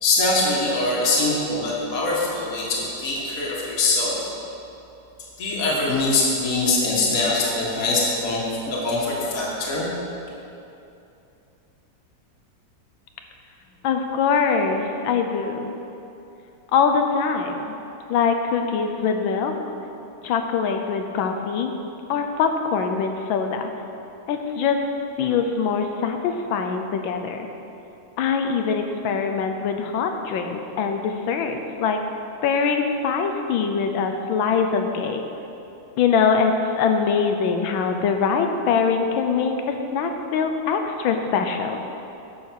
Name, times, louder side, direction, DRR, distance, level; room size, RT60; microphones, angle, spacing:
voice 1, 0.0-4.2 5.4-9.9, left 2 dB, 50° left, -4 dB, 2.0 m, -23 dB
voice 2, 13.8-15.7 16.7-17.7 18.1-19.5 20.2-21.7 22.1-23.7 24.3-24.9 25.2-27.5 28.2-32.0 32.4-35.2 36.0-41.8, left 5 dB, 90° left, 5 dB, 1.5 m, -23 dB
10.5 x 6.3 x 6.3 m, 2.8 s
omnidirectional pair, 2.1 m